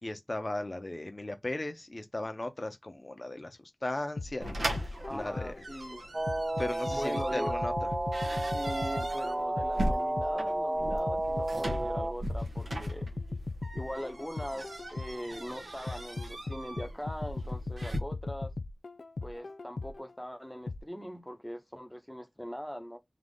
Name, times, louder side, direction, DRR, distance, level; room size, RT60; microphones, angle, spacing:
voice 1, 0.0-5.6 6.6-7.9, left 2 dB, 35° left, 0.9 m, -37 dB
sound 1, 4.2-5.7 6.3-10.5 11.1-15.3 15.9-20.1 20.7-20.8, left 3 dB, 80° left, 0.4 m, -38 dB
sound 2, 4.4-18.0, right 1 dB, 80° right, 1.2 m, -39 dB
voice 2, 5.0-6.0 6.9-7.5 8.5-13.1 13.7-18.5 19.2-23.0, equal, 5° left, 0.9 m, -41 dB
sound 3, 6.1-12.1, right 1 dB, 35° right, 0.4 m, -32 dB
3.9 x 2.9 x 3.6 m
wide cardioid pair, 70°, 0 cm